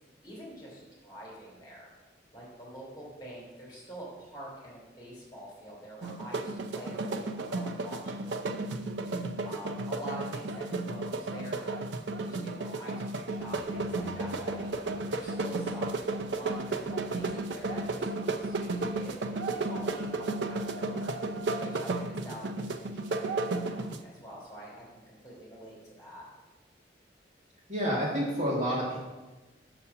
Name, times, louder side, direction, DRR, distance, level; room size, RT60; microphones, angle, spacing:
voice 1, 0.2-1.9 2.3-26.2, equal, 20° left, -5 dB, 2.9 m, -46 dB
sound 1, 6.0-24.0, right 2 dB, 80° right, 0.5 m, -33 dB
sound 2, 13.4-21.4, equal, 15° right, 1.8 m, -52 dB
voice 2, 27.7-29.0, equal, 40° right, -6 dB, 2.1 m, -29 dB
6.0 x 5.7 x 6.7 m, 1.2 s
head